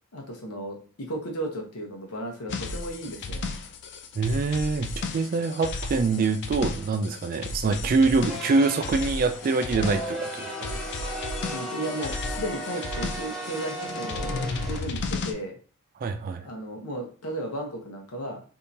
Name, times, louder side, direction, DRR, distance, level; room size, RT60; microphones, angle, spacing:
voice 1, 0.1-3.4 11.5-15.6 16.4-18.4, right 1 dB, 85° left, 2 dB, 1.0 m, -35 dB
sound 1, 2.5-15.3, left 3 dB, 55° left, 0.4 m, -34 dB
voice 2, 4.2-10.8 16.0-16.4, right 4 dB, 40° right, 8 dB, 0.3 m, -25 dB
sound 2, 8.3-14.8, right 1 dB, ahead, 0.7 m, -36 dB
3.6 x 2.7 x 2.7 m, 0.38 s
head